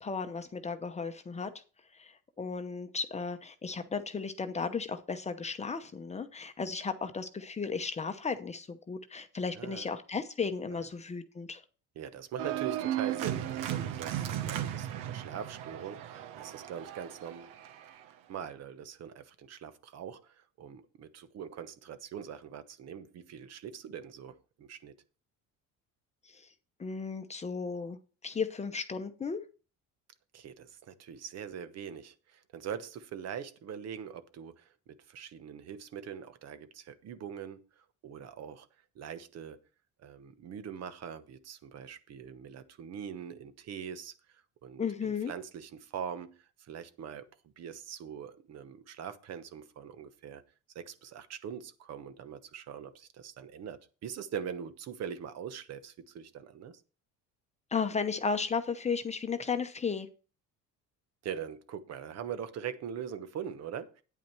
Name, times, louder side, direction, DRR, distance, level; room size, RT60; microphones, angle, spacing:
voice 1, 0.0-1.5 1.9-2.1 2.4-11.6 26.3-26.4 26.8-28.0 28.2-29.4 44.8-45.3 57.7-60.1, left 5 dB, 20° left, 0.8 m, -34 dB
voice 2, 9.5-9.9 10.7-10.8 11.9-17.5 18.3-24.9 30.3-34.7 35.1-38.7 38.9-39.6 40.0-47.3 47.6-50.4 50.7-56.8 61.2-64.0, right 8 dB, 50° right, 1.1 m, -42 dB
Organ, 12.4-18.0, right 12 dB, 85° right, 1.1 m, -36 dB
9.4 x 8.4 x 4.6 m
cardioid pair, 125°, 32 cm